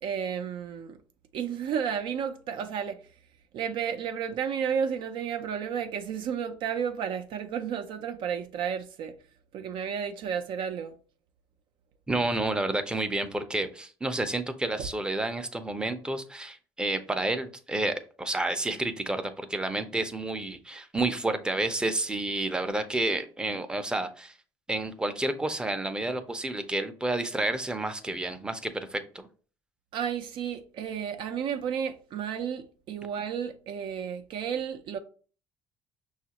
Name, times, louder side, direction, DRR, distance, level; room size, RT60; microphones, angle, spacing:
voice 1, 0.0-1.0 1.3-3.0 3.5-9.1 9.5-10.9 29.9-35.0, right 7 dB, 60° right, 0.4 m, -32 dB
voice 2, 12.1-24.3 24.7-29.3, right 2 dB, 10° right, 0.5 m, -30 dB
5.9 x 2.4 x 2.9 m
cardioid pair, 110°, 9 cm